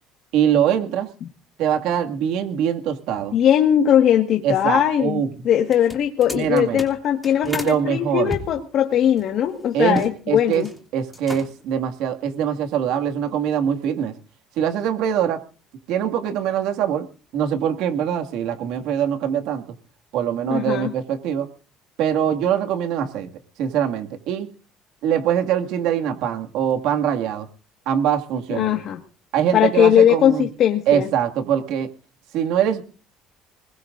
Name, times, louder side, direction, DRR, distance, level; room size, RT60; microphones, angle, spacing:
voice 1, 0.3-1.1 1.6-3.4 4.4-5.3 6.3-6.8 7.4-8.3 9.7-10.0 10.3-10.6 10.9-14.1 14.6-15.4 15.9-17.1 17.3-19.6 20.1-21.5 22.0-23.3 23.6-24.5 25.0-27.5 27.9-28.7 29.3-30.5 30.9-31.9 32.3-32.8, right 9 dB, 70° right, 4 dB, 2.2 m, -23 dB
voice 2, 3.3-10.7 20.4-20.9 28.5-29.0 29.5-31.1, left 10 dB, 50° left, 4 dB, 1.7 m, -19 dB
sound 1, 5.6-7.8 8.3-10.1 10.4-10.8 11.1-11.7, left 1 dB, 5° left, 2.8 m, -34 dB
25.5 x 21.0 x 2.6 m, 0.37 s
cardioid pair, 150°, 0 cm